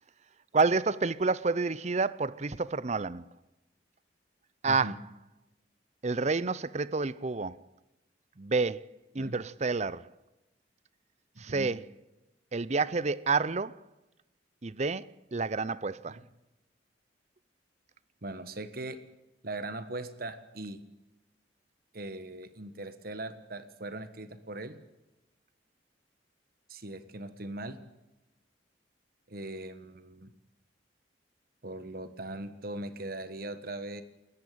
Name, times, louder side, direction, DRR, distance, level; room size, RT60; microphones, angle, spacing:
voice 1, 0.5-3.3 4.6-4.9 6.0-7.6 8.4-8.9 9.1-10.1 11.4-11.8 12.5-13.8 14.6-16.2, right 4 dB, 40° right, 0.6 m, -29 dB
voice 2, 4.6-5.0 9.1-9.4 11.3-11.7 16.1-16.2 18.2-19.0 19.4-20.8 21.9-24.8 26.7-27.8 29.3-30.3 31.6-34.0, right 2 dB, 55° right, 1.4 m, -40 dB
19.5 x 14.5 x 9.4 m
head